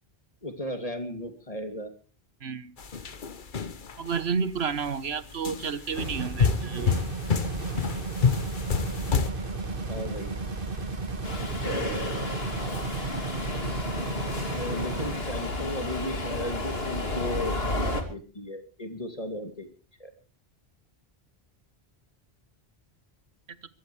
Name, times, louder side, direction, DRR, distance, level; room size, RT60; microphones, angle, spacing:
voice 1, 0.4-1.9 9.9-10.4 14.5-19.7 20.0-20.1, left 1 dB, 35° left, 3.0 m, -35 dB
voice 2, 2.4-2.7 4.0-7.1, right 6 dB, 80° right, 1.4 m, -31 dB
sound 1, 2.8-4.2 4.7-5.0 5.5-9.3, left 6 dB, 50° left, 1.2 m, -27 dB
sound 2, 5.9-15.2, right 3 dB, 55° right, 2.3 m, -34 dB
Subway metro underground, 11.2-18.0, left 2 dB, 70° left, 3.0 m, -32 dB
23.0 x 16.0 x 3.3 m
omnidirectional pair, 1.0 m